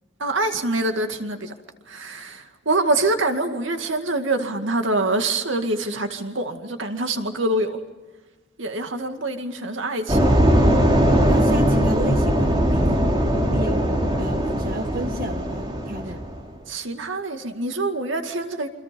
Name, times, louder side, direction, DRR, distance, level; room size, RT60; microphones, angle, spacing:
voice 1, 0.2-1.5 1.9-7.8 8.6-10.2 16.7-18.7, right 2 dB, 85° right, 6 dB, 2.2 m, -25 dB
sound 1, 10.1-16.4, equal, 25° right, 3.2 m, -20 dB
voice 2, 11.3-13.1 13.5-13.9 14.2-16.2, right 1 dB, 50° right, 5 dB, 1.8 m, -31 dB
28.5 x 26.5 x 5.3 m, 1.2 s
head